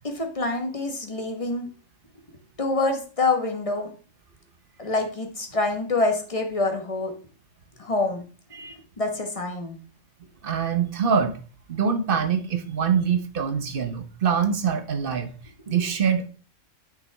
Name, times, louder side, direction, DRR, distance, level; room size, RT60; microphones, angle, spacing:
voice 1, 0.0-1.7 2.6-3.9 4.8-7.1 7.8-8.2 9.0-9.8 15.7-15.8, left 3 dB, 25° left, 1.3 m, -26 dB
voice 2, 10.4-11.4 11.7-15.3 15.7-16.3, right 7 dB, 50° right, 0.9 m, -24 dB
9.1 x 5.7 x 3.4 m
omnidirectional pair, 1.4 m